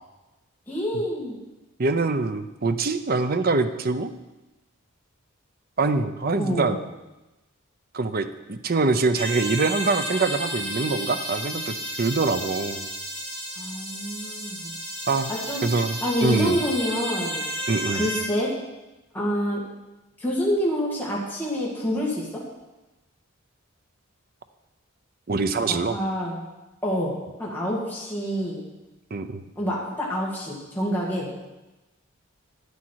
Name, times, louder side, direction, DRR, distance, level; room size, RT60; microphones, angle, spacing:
voice 1, 0.7-1.4 6.4-6.7 13.6-14.7 15.3-15.6 16.0-17.4 17.9-18.5 19.1-19.6 20.2-22.4 25.7-26.4 26.8-27.1 27.4-28.6 29.6-31.3, equal, 10° left, -5 dB, 2.2 m, -27 dB
voice 2, 1.8-4.1 5.8-6.8 7.9-12.9 15.1-15.3 15.6-16.6 17.7-18.1 25.3-26.0 29.1-29.4, right 3 dB, 45° right, 10 dB, 0.6 m, -24 dB
sound 1, 9.1-18.3, equal, 30° right, 3.6 m, -32 dB
11.5 x 9.9 x 4.7 m, 1.1 s
head